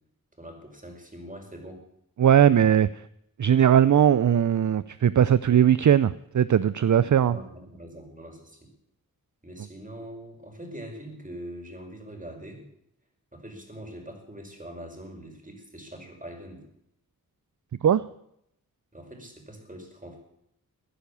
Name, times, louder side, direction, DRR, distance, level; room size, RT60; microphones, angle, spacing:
voice 1, 0.4-1.8 7.0-8.6 9.4-12.6 13.3-16.6 18.9-20.2, right 1 dB, 20° right, 3 dB, 5.5 m, -43 dB
voice 2, 2.2-2.9 3.4-7.4 17.8-18.0, right 9 dB, 55° right, 17 dB, 0.5 m, -19 dB
15.5 x 10.5 x 8.5 m, 0.77 s
cardioid pair, 50°, 36 cm